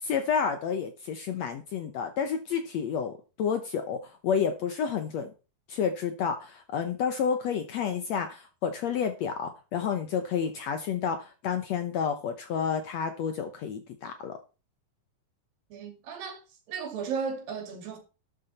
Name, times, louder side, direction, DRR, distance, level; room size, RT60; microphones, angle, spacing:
voice 1, 0.0-5.3 5.7-14.4, left 7 dB, 70° left, 1.7 m, -30 dB
voice 2, 15.7-16.4 16.7-18.0, right 6 dB, 80° right, 4.1 m, -35 dB
12.5 x 8.9 x 4.2 m
omnidirectional pair, 4.1 m